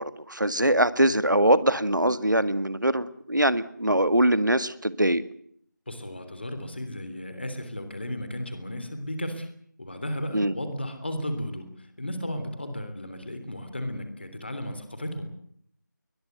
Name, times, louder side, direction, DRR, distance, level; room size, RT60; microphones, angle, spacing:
voice 1, 0.0-5.2 10.3-10.5, right 1 dB, 75° right, 14 dB, 1.9 m, -23 dB
voice 2, 5.9-9.5 9.8-15.3, left 1 dB, 35° left, 8 dB, 3.3 m, -34 dB
22.0 x 21.0 x 8.0 m, 0.65 s
figure-of-eight pair, 170°, 10 cm